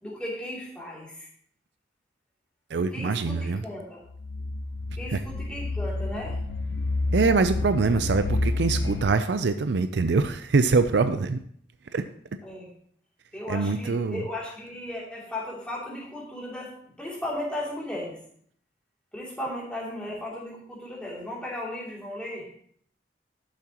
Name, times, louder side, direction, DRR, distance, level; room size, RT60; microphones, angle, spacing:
voice 1, 0.0-1.3 2.9-4.0 5.0-6.4 12.4-12.7 13.3-18.2 19.1-22.5, left 1 dB, 5° left, -6 dB, 2.8 m, -36 dB
voice 2, 2.7-3.6 7.1-11.4 11.9-12.1 13.5-14.2, right 4 dB, 80° right, 10 dB, 0.5 m, -24 dB
sound 1, 4.1-9.1, left 2 dB, 80° left, 0.8 m, -29 dB
12.0 x 7.4 x 3.0 m, 0.63 s
head